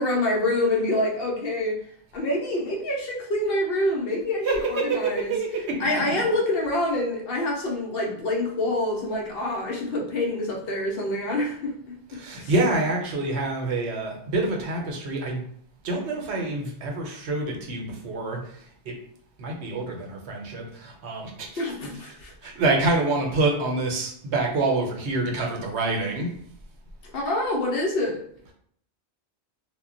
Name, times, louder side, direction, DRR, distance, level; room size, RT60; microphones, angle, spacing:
voice 1, 0.0-1.8 2.1-5.3 5.8-12.5 21.6-22.3 27.1-28.2, left 1 dB, 65° left, 0 dB, 0.7 m, -26 dB
voice 2, 12.1-15.4 15.8-18.9 19.4-21.6 22.1-22.2 22.4-26.3, right 2 dB, 75° right, 1 dB, 0.9 m, -27 dB
2.2 x 2.1 x 3.7 m, 0.64 s
omnidirectional pair, 1.2 m